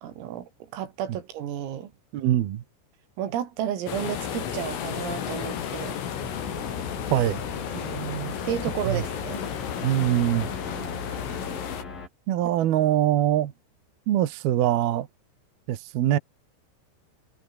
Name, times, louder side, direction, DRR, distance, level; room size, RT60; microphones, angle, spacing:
voice 1, 0.0-1.9 3.2-6.0 7.7-9.4 10.8-11.0, right 10 dB, 80° right, 5.5 m, -32 dB
voice 2, 2.1-2.6 7.1-7.4 8.9-9.0 9.8-10.5 12.3-13.5 14.1-15.1 15.7-16.2, right 12 dB, 60° right, 2.9 m, -23 dB
sound 1, 3.9-11.8, left 8 dB, 75° left, 6.1 m, -33 dB
sound 2, 6.2-12.1, left 4 dB, 45° left, 8.2 m, -38 dB
omnidirectional pair, 5.9 m